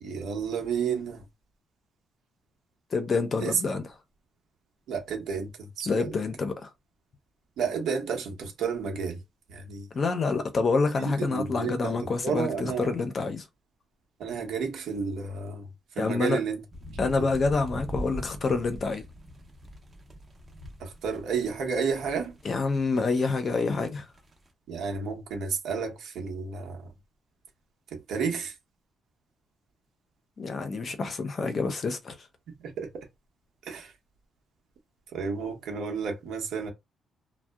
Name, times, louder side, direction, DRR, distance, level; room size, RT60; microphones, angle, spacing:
voice 1, 0.0-1.2 3.4-3.6 4.9-6.1 7.6-9.2 9.5-9.9 11.0-13.0 14.2-15.7 15.9-16.6 17.2-17.3 20.8-22.4 24.7-26.9 27.9-28.6 32.6-32.9 33.6-33.9 35.1-36.7, right 6 dB, 75° right, 0.8 m, -31 dB
voice 2, 2.9-3.8 5.9-6.7 9.9-13.4 16.0-16.4 17.0-19.0 22.4-24.1 30.4-32.2, left 4 dB, 35° left, 0.5 m, -27 dB
sound 1, 16.7-24.5, equal, 20° right, 0.5 m, -42 dB
2.6 x 2.0 x 2.3 m
cardioid pair, 150°, 0 cm